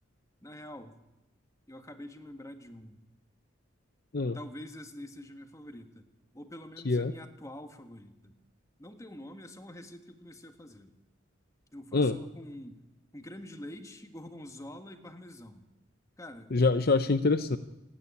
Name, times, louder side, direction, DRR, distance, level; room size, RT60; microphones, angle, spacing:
voice 1, 0.4-1.0 1.7-3.0 4.3-6.1 6.3-8.4 8.8-10.9 11.7-12.8 13.1-15.7 16.2-16.5, left 1 dB, 15° left, 7 dB, 1.6 m, -46 dB
voice 2, 16.5-17.6, left 3 dB, 50° left, 11 dB, 0.7 m, -25 dB
27.5 x 10.0 x 10.0 m, 0.99 s
head